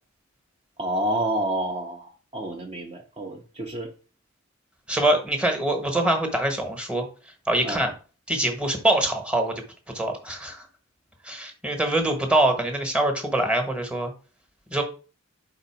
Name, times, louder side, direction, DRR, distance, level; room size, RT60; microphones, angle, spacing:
voice 1, 0.8-3.9 7.6-7.9, right 1 dB, 30° right, 0.6 m, -29 dB
voice 2, 4.9-7.0 7.5-7.9 8.3-10.6 11.2-14.1 14.7-14.8, right 1 dB, 5° right, 1.1 m, -24 dB
4.8 x 3.9 x 5.8 m
head